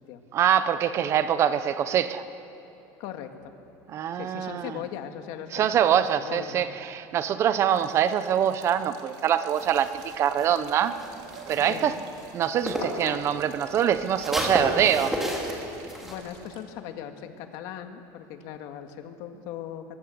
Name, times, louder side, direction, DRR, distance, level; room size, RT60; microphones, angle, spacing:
voice 1, 0.3-2.2 3.9-4.7 5.5-11.0 11.5-12.0 12.3-15.2, right 9 dB, 30° right, 12 dB, 0.7 m, -24 dB
voice 2, 3.0-3.3 4.1-5.7 5.9-6.6 11.7-12.0 16.0-20.0, left 10 dB, 55° left, 6 dB, 1.9 m, -39 dB
sound 1, 3.4-4.5 6.6-8.9 9.7-9.9 10.2-10.9 11.8-12.2 12.5-14.4, left 4 dB, 35° left, 2.6 m, -47 dB
sound 2, 7.7-16.6, right 8 dB, 65° right, 2.9 m, -47 dB
sound 3, 9.5-13.1 13.4-16.1, equal, 5° right, 3.1 m, -33 dB
23.5 x 23.0 x 7.9 m, 3.0 s
cardioid pair, 175°, 9 cm